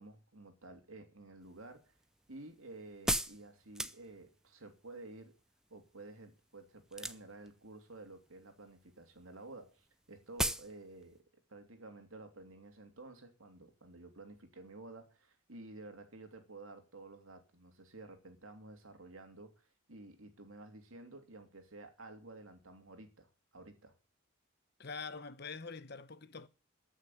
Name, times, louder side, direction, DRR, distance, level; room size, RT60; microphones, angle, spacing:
voice 1, 0.0-2.0 2.3-5.4 5.7-11.2 11.5-23.9, right 2 dB, 85° right, 2.8 m, -52 dB
sound 1, 1.5-4.5 6.9-7.5 7.8-8.4 8.7-8.9 9.1-9.2 9.4-9.5 9.9-10.0 10.4-10.7 11.0-11.1, right 1 dB, 5° right, 0.6 m, -36 dB
voice 2, 24.8-26.5, left 4 dB, 50° left, 1.0 m, -45 dB
14.5 x 6.4 x 9.3 m
head